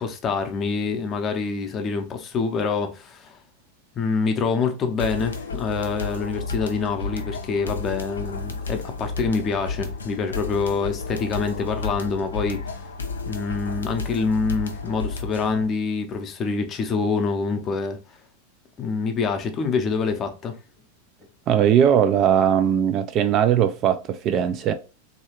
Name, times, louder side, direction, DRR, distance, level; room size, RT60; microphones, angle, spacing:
voice 1, 0.0-3.4 4.0-12.6 13.3-18.0 18.8-20.5, left 4 dB, 30° left, 0.6 m, -26 dB
sound 1, 5.0-15.7, left 4 dB, 70° left, 0.5 m, -32 dB
voice 2, 21.5-24.7, right 9 dB, 35° right, 0.3 m, -19 dB
3.1 x 2.7 x 2.9 m
figure-of-eight pair, 90°, 0 cm